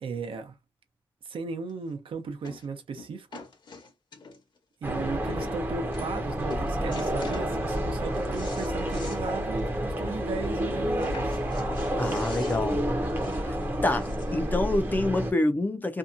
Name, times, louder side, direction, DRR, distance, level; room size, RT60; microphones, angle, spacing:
voice 1, 0.0-0.6 1.2-3.4 4.8-11.3 12.0-12.2, right 4 dB, 70° right, 0.7 m, -36 dB
sound 1, 1.7-1.8 2.4-2.7 3.0-4.6 5.1-5.2 5.4-5.6 5.9-6.2 6.5-7.5 7.9-9.2 9.6-9.7 10.0-10.1 11.0-14.5 15.3-15.4, left 3 dB, 55° left, 0.9 m, -45 dB
sound 2, 4.8-15.3, equal, 25° right, 0.7 m, -29 dB
voice 2, 12.0-12.8 13.4-13.6 13.8-16.0, left 2 dB, 20° left, 0.4 m, -27 dB
2.7 x 2.3 x 2.5 m
wide cardioid pair, 145°, 9 cm